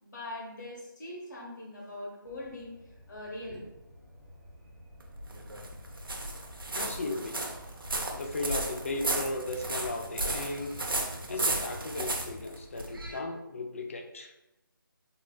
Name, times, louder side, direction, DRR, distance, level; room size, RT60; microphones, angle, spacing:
voice 1, 0.0-3.6, left 1 dB, 55° left, -4 dB, 1.3 m, -42 dB
sound 1, 2.2-12.5, left 1 dB, 20° right, 1.1 m, -50 dB
sound 2, 5.0-13.2, right 2 dB, 75° right, 0.7 m, -34 dB
voice 2, 6.7-7.4 8.1-10.7 11.3-14.3, left 2 dB, 35° left, 4 dB, 0.4 m, -36 dB
4.2 x 3.2 x 2.3 m, 0.92 s
figure-of-eight pair, 160°, 12 cm